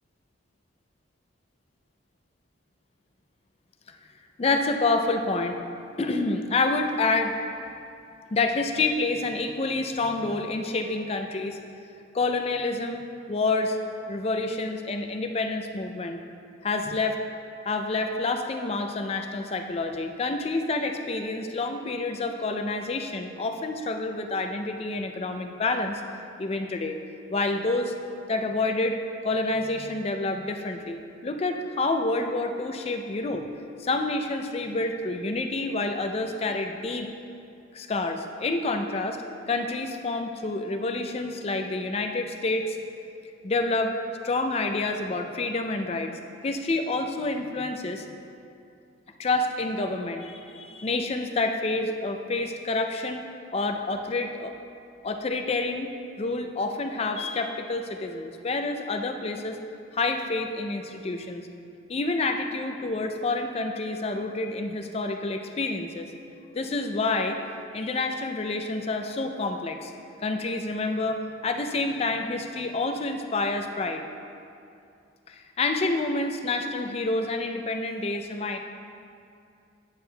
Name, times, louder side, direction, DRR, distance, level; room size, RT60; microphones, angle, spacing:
voice 1, 4.4-5.6 6.0-7.3 8.3-11.6 12.1-13.8 14.1-16.2 16.6-17.2 17.7-26.0 26.4-27.0 27.3-27.9 28.3-33.4 33.8-37.1 37.7-39.2 39.5-42.8 43.4-43.9 44.2-48.1 49.2-53.2 53.5-54.5 55.0-55.9 56.2-59.6 59.9-61.4 61.9-66.1 66.5-67.4 67.7-69.9 70.2-74.0 75.3-78.6, left 3 dB, 30° left, 5 dB, 0.4 m, -28 dB
9.5 x 8.0 x 2.2 m, 2.5 s
head